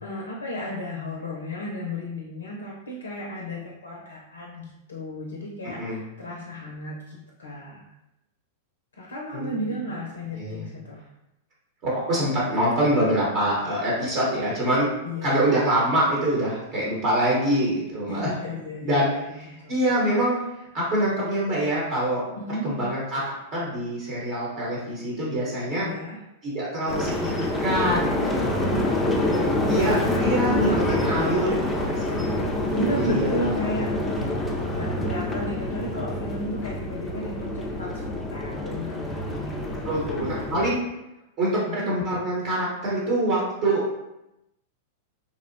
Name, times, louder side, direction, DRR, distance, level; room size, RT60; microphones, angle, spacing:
voice 1, 0.0-7.8 8.9-11.0 13.5-13.6 15.0-15.6 18.1-19.8 20.8-21.0 22.4-22.9 25.8-26.2 28.6-31.4 32.6-33.9 34.2-40.0 41.7-41.9, equal, 90° left, -1 dB, 0.4 m, -34 dB
voice 2, 11.8-14.9 15.2-18.3 18.8-19.1 19.7-20.4 20.7-22.2 22.6-23.2 23.5-25.9 26.4-29.0 29.6-32.2 33.0-33.5 33.8-34.3 39.9-40.8 41.4-43.9, right 1 dB, 45° right, -5 dB, 0.9 m, -25 dB
sound 1, 26.9-40.7, left 1 dB, 15° left, 0.4 m, -26 dB
2.6 x 2.0 x 2.6 m, 0.91 s
hypercardioid pair, 105°, 0 cm